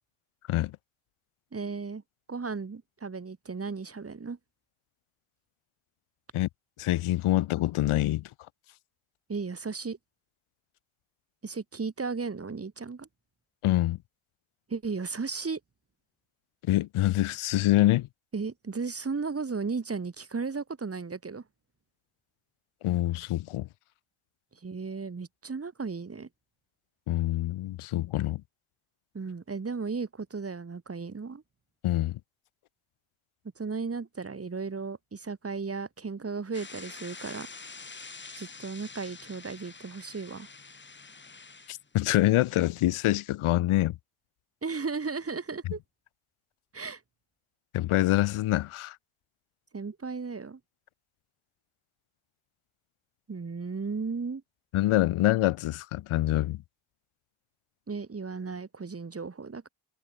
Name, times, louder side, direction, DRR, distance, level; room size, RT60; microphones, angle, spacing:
voice 1, 1.5-2.0 2.3-4.4 9.3-10.0 11.4-13.1 14.7-15.6 18.3-21.4 24.6-26.3 29.1-31.4 33.6-37.5 38.4-40.5 44.6-45.8 46.7-47.0 49.7-50.6 53.3-54.4 57.9-59.7, right 4 dB, 30° right, 7.2 m, -35 dB
voice 2, 6.8-8.2 13.6-14.0 16.6-18.1 22.8-23.7 27.1-28.4 31.8-32.2 41.7-44.0 47.7-49.0 54.7-56.6, left 15 dB, 75° left, 2.1 m, -25 dB
sound 1, 36.5-42.9, left 4 dB, 20° left, 2.7 m, -47 dB
cardioid pair, 95°, 49 cm